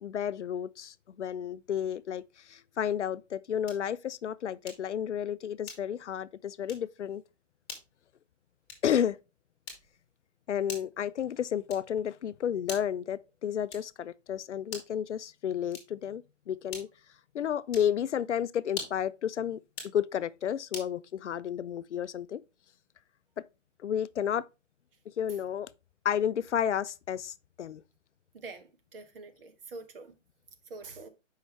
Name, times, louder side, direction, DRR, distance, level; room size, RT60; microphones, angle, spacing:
voice 1, 0.0-2.2 2.5-7.2 8.8-9.2 10.5-16.9 17.3-19.6 19.9-22.4 23.8-24.4 25.2-25.7 26.0-27.8, left 9 dB, 65° left, 0.5 m, -31 dB
sound 1, 3.6-4.0 4.7-5.0 5.6-6.1 6.6-6.9 7.6-7.9 8.6-9.0 9.6-10.1 10.7-11.0 11.7-12.0 12.6-13.1 13.7-14.0 14.6-15.0 15.7-16.1 16.7-17.1 17.7-18.0 18.7-19.1 19.7-20.0 20.7-21.0, left 5 dB, 15° left, 2.0 m, -44 dB
voice 2, 28.3-30.1 30.7-31.1, right 3 dB, 45° right, 1.3 m, -45 dB
7.5 x 5.5 x 3.4 m
hypercardioid pair, 150°, 38 cm